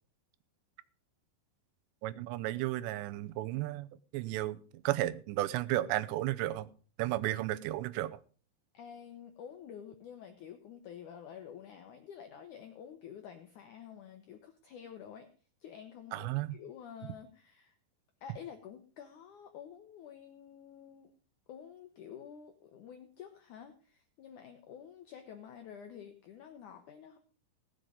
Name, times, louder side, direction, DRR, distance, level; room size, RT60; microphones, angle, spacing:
voice 1, 2.0-3.9 4.1-6.7 7.0-8.2 16.1-16.6, right 15 dB, 85° right, 16 dB, 2.9 m, -33 dB
voice 2, 8.7-15.3 15.6-17.7 18.2-21.1 21.5-27.2, left 8 dB, 80° left, 7 dB, 1.8 m, -49 dB
17.5 x 7.8 x 5.0 m, 0.40 s
omnidirectional pair, 4.9 m